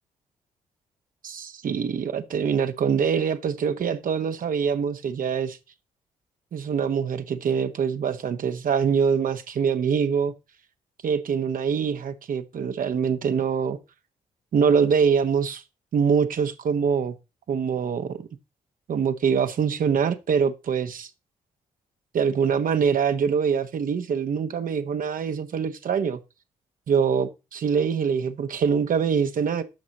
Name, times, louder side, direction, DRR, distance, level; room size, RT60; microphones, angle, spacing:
voice 1, 1.2-5.6 6.5-10.3 11.0-13.8 14.5-15.6 15.9-17.2 17.5-18.3 18.9-21.1 22.1-26.2 26.9-29.6, right 6 dB, 60° right, 1.2 m, -24 dB
10.5 x 6.3 x 4.1 m
hypercardioid pair, 45°, 16 cm